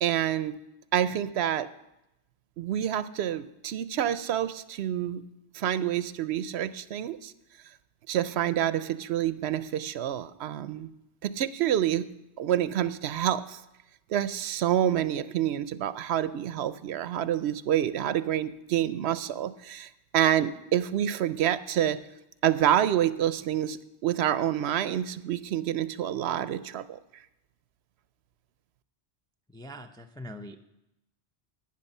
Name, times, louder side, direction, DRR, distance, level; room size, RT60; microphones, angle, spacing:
voice 1, 0.0-0.6 0.9-1.7 2.6-5.2 5.5-7.3 8.1-10.9 11.2-12.1 12.4-13.6 14.1-22.0 22.4-27.0, right 11 dB, 75° right, 15 dB, 0.8 m, -27 dB
voice 2, 29.5-30.6, left 1 dB, 5° left, 5 dB, 0.4 m, -42 dB
12.0 x 9.0 x 5.4 m, 0.89 s
omnidirectional pair, 1.1 m